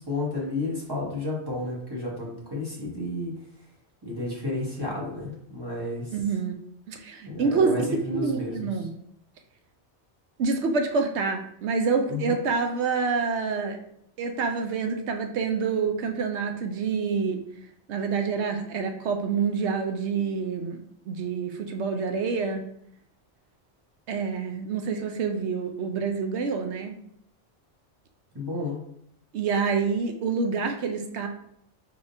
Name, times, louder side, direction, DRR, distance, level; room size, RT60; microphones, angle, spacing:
voice 1, 0.0-3.4 4.0-6.1 7.3-8.7 12.1-12.3 28.3-28.8, left 2 dB, 20° right, -4 dB, 1.1 m, -31 dB
voice 2, 6.1-6.6 6.9-7.7 8.2-8.9 10.4-13.8 14.2-17.4 17.9-20.8 21.1-22.6 24.1-26.9 29.3-31.3, right 5 dB, 70° right, 5 dB, 0.9 m, -27 dB
4.8 x 3.6 x 2.6 m, 0.70 s
omnidirectional pair, 1.2 m